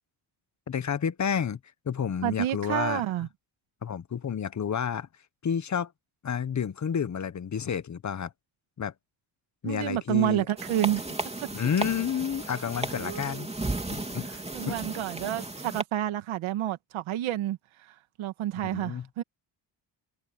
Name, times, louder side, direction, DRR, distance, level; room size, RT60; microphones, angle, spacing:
voice 1, 0.7-1.6 1.8-3.0 3.8-5.1 5.4-5.9 6.2-8.3 8.8-8.9 9.6-10.4 11.5-13.5 13.9-14.8 18.6-19.1, left 7 dB, 35° left, 1.1 m, -30 dB
voice 2, 2.2-3.3 9.6-11.0 13.0-13.5 14.5-19.2, right 13 dB, 85° right, 2.2 m, -29 dB
sound 1, 10.6-15.8, right 2 dB, 15° right, 3.1 m, -34 dB
cardioid pair, 95°, 47 cm